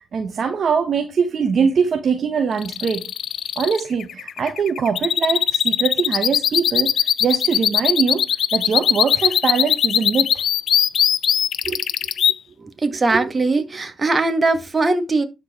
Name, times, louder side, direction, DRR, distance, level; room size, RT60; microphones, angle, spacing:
voice 1, 0.1-6.9 7.2-8.2 8.5-10.4 11.7-11.8 13.1-13.2, right 6 dB, 50° right, 1.1 m, -22 dB
sound 1, 2.6-12.3, left 9 dB, 60° left, 0.5 m, -19 dB
voice 2, 12.6-15.2, right 3 dB, 30° right, 2.1 m, -20 dB
12.0 x 4.7 x 4.4 m
hypercardioid pair, 55°, 0 cm